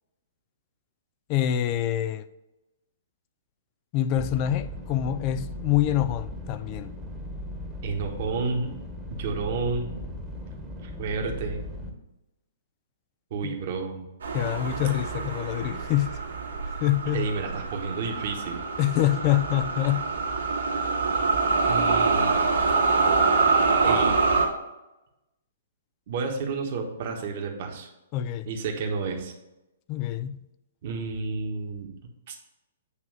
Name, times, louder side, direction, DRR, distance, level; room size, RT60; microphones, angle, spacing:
voice 1, 1.3-2.2 3.9-6.9 13.4-13.6 14.3-16.2 16.8-17.3 18.8-20.1 28.1-28.5 29.9-30.4, left 12 dB, 35° left, 0.4 m, -26 dB
sound 1, 4.2-11.9, left 1 dB, 5° right, 1.2 m, -37 dB
voice 2, 7.8-8.7 9.1-9.9 10.8-11.6 13.3-14.1 17.1-18.6 21.7-22.3 23.8-24.2 26.1-27.9 28.4-29.3 30.8-31.9 32.3-32.4, right 4 dB, 50° right, 1.4 m, -31 dB
sound 2, 14.2-24.5, right 4 dB, 80° right, 1.8 m, -25 dB
8.4 x 3.0 x 6.4 m
hypercardioid pair, 125°, 0 cm